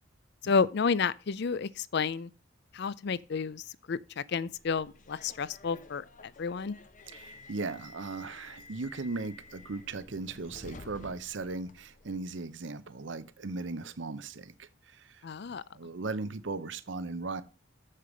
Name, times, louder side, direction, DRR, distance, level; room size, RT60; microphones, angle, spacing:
voice 1, 0.4-2.3 2.7-6.8 15.2-15.6, left 5 dB, 55° left, 0.5 m, -31 dB
Subway metro underground, 4.6-12.2, left 3 dB, 40° left, 0.9 m, -52 dB
voice 2, 7.1-17.4, right 3 dB, 65° right, 0.7 m, -38 dB
7.6 x 6.5 x 5.0 m
head